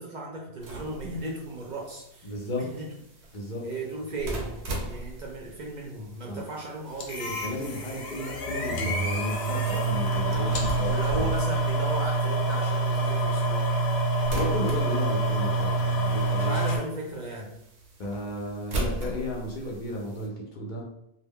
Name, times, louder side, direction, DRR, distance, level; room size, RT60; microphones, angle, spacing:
voice 1, 0.0-2.9 3.6-7.4 10.2-13.6 16.3-17.5, right 2 dB, 55° right, -2 dB, 0.6 m, -36 dB
sound 1, 0.6-20.3, right 2 dB, 90° right, 0.9 m, -40 dB
voice 2, 2.2-2.8 3.3-3.7 6.3-6.4 7.2-11.3 14.3-16.5 18.0-20.8, left 1 dB, 55° left, -1 dB, 0.6 m, -34 dB
sound 2, 7.0-16.8, right 2 dB, 85° left, 0.8 m, -26 dB
2.2 x 2.1 x 3.5 m, 0.81 s
omnidirectional pair, 1.1 m